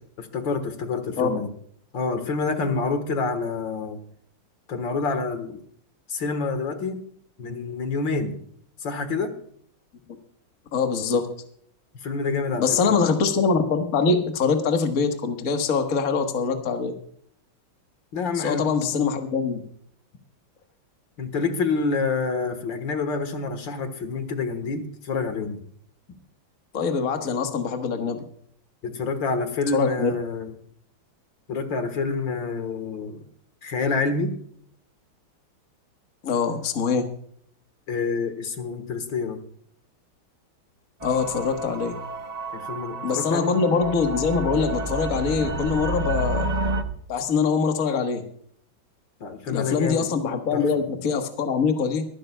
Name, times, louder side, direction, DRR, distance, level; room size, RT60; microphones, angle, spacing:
voice 1, 0.2-1.5 1.9-4.0 4.7-5.6 6.1-7.0 7.4-8.4 8.8-9.3 12.0-13.0 18.1-18.6 21.2-25.6 28.8-30.5 31.5-33.2 33.6-34.3 37.9-39.4 42.5-43.5 49.2-50.1 50.5-50.6, left 4 dB, 65° left, 8 dB, 2.1 m, -27 dB
voice 2, 10.7-11.3 12.6-16.9 18.3-19.6 26.7-28.2 29.7-30.1 36.2-37.0 41.0-42.0 43.0-46.5 47.1-48.2 49.5-52.1, left 5 dB, 45° left, 5 dB, 1.7 m, -23 dB
sound 1, 41.0-46.8, right 2 dB, 75° right, 0.3 m, -30 dB
23.5 x 11.5 x 2.3 m, 0.63 s
omnidirectional pair, 2.2 m